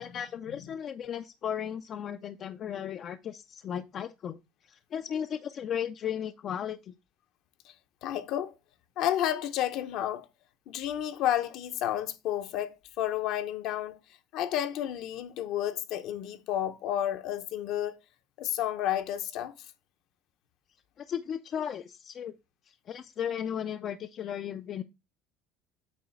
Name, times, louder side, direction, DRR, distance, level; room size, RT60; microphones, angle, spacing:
voice 1, 0.0-4.4 4.7-6.9 21.0-22.4 22.7-24.8, left 9 dB, 40° left, 0.4 m, -35 dB
voice 2, 8.0-8.6 9.0-10.3 10.7-14.0 14.3-18.0 18.4-19.5, left 11 dB, 60° left, 0.8 m, -31 dB
8.5 x 3.1 x 5.8 m
cardioid pair, 145°, 0 cm